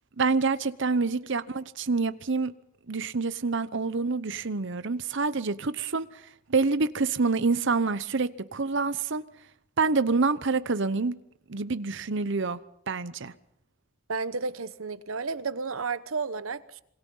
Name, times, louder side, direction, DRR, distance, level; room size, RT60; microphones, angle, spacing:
voice 1, 0.2-2.5 2.9-6.1 6.5-9.2 9.8-11.1 11.5-12.6 12.9-13.3, right 4 dB, 60° right, 0.9 m, -27 dB
voice 2, 14.1-16.8, right 4 dB, 85° right, 1.0 m, -32 dB
26.5 x 23.5 x 5.6 m
head